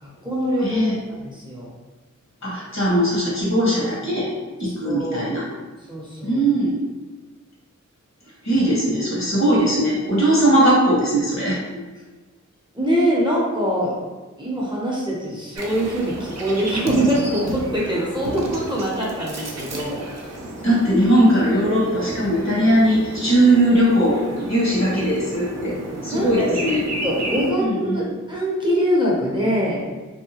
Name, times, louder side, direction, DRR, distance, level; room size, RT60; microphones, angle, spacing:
voice 1, 0.0-1.7 4.6-5.4 5.8-6.4 12.7-14.0 14.4-20.5 26.1-26.6 27.0-29.8, equal, 15° right, -5 dB, 0.7 m, -24 dB
voice 2, 0.6-0.9 2.4-4.3 4.6-5.4 6.2-6.7 8.4-11.6 20.6-25.8 26.0-26.8 27.6-28.1, right 1 dB, 60° left, -6 dB, 1.2 m, -19 dB
sound 1, 15.6-27.5, right 1 dB, 55° right, 0.5 m, -32 dB
2.7 x 2.2 x 2.8 m, 1.3 s
wide cardioid pair, 50°, 31 cm